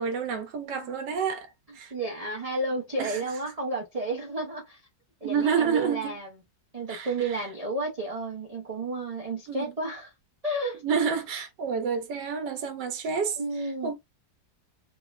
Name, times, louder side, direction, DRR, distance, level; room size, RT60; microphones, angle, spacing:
voice 1, 0.0-1.9 3.0-3.2 5.2-6.2 6.9-7.5 9.5-9.6 10.8-13.9, right 6 dB, 80° right, 1.3 m, -29 dB
voice 2, 1.9-4.8 5.2-6.3 6.7-10.1 10.4-10.8 13.4-13.9, right 2 dB, 50° right, 0.4 m, -32 dB
3.5 x 2.1 x 2.3 m
omnidirectional pair, 1.8 m